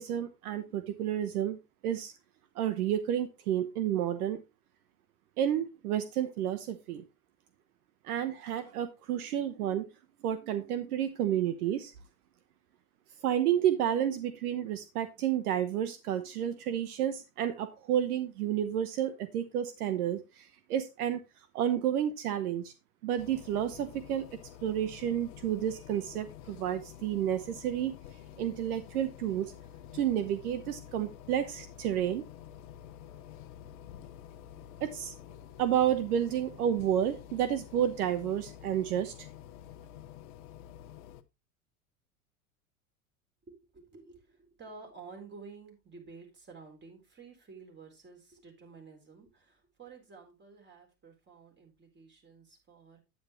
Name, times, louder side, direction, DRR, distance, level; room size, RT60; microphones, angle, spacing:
voice 1, 0.0-1.6 1.8-2.1 2.5-4.4 5.4-7.0 8.0-9.8 10.2-11.9 13.2-21.2 21.5-22.7 23.0-24.3 24.6-27.9 28.4-29.5 29.9-32.3 34.8-35.1 35.6-39.3, right 10 dB, 75° right, 11 dB, 1.1 m, -30 dB
sound 1, 23.2-41.2, left 11 dB, 65° left, 0.9 m, -49 dB
voice 2, 43.4-53.0, right 4 dB, 25° right, 2 dB, 4.0 m, -51 dB
9.2 x 8.9 x 3.1 m, 0.25 s
hypercardioid pair, 105°, 44 cm